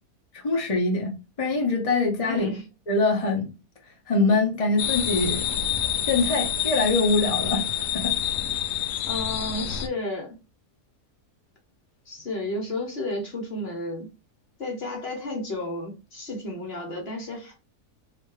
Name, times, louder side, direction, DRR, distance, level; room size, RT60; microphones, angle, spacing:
voice 1, 0.3-2.5 2.9-3.5 4.1-5.5 6.1-8.1, left 3 dB, 30° left, 0.8 m, -24 dB
voice 2, 2.3-2.6 9.1-10.3 12.1-14.1 14.6-17.5, left 1 dB, 45° left, 1.1 m, -32 dB
sound 1, 4.8-9.9, left 10 dB, 85° left, 1.1 m, -27 dB
3.2 x 2.9 x 4.6 m
omnidirectional pair, 1.7 m